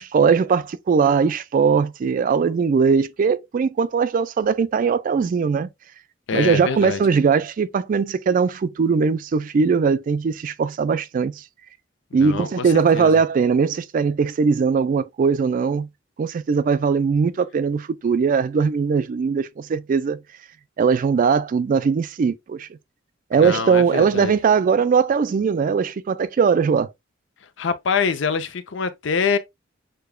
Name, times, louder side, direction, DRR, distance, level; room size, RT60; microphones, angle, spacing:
voice 1, 0.0-5.7 6.3-11.4 12.1-15.9 16.2-20.2 20.8-22.7 23.3-26.9, right 5 dB, 45° right, 0.3 m, -20 dB
voice 2, 6.3-7.0 12.1-13.2 23.3-24.3 27.6-29.4, left 5 dB, 70° left, 0.5 m, -25 dB
6.6 x 2.3 x 2.2 m
head